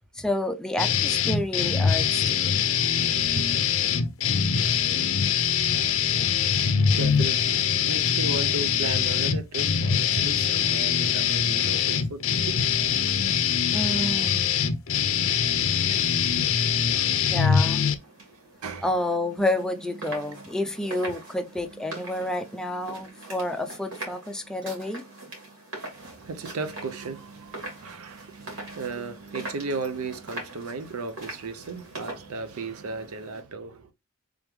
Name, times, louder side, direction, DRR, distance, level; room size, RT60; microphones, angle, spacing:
voice 1, 0.1-2.5 13.7-14.6 17.3-17.8 18.8-25.1, left 1 dB, 5° left, 0.4 m, -29 dB
sound 1, 0.8-17.9, left 7 dB, 65° left, 0.5 m, -23 dB
voice 2, 3.1-3.5 7.0-12.6 18.6-18.9 21.1-21.2 26.0-33.9, right 3 dB, 85° right, 0.6 m, -35 dB
sound 2, 17.4-33.4, right 2 dB, 65° right, 2.2 m, -42 dB
3.5 x 3.4 x 3.1 m
head